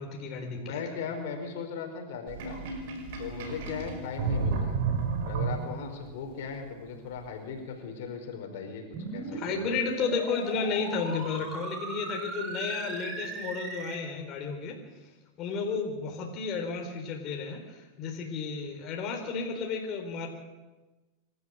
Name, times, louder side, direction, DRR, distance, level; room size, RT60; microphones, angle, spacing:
voice 1, 0.0-0.8 9.4-14.8 15.4-20.3, left 5 dB, 40° left, 1 dB, 4.3 m, -32 dB
voice 2, 0.5-2.6 3.2-4.8 5.2-8.8 9.1-9.6, left 6 dB, 70° left, 4 dB, 4.7 m, -38 dB
Sink (filling or washing), 2.3-6.0, right 5 dB, 65° right, 5.5 m, -31 dB
sound 1, 8.9-13.9, right 3 dB, 30° right, 5.9 m, -38 dB
26.0 x 13.0 x 8.0 m, 1.2 s
hypercardioid pair, 120°, 0 cm